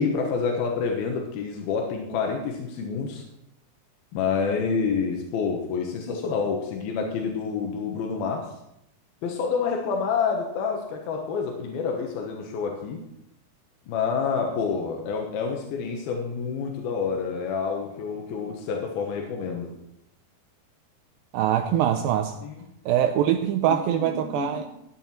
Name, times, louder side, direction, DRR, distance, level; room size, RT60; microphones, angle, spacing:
voice 1, 0.0-3.2 4.1-8.5 9.2-13.0 13.9-19.7 22.4-22.7 23.9-24.7, left 5 dB, 90° left, 2 dB, 3.1 m, -28 dB
voice 2, 21.3-22.4 22.9-24.7, right 10 dB, 80° right, 5 dB, 2.3 m, -23 dB
14.5 x 9.3 x 4.4 m, 0.82 s
omnidirectional pair, 4.3 m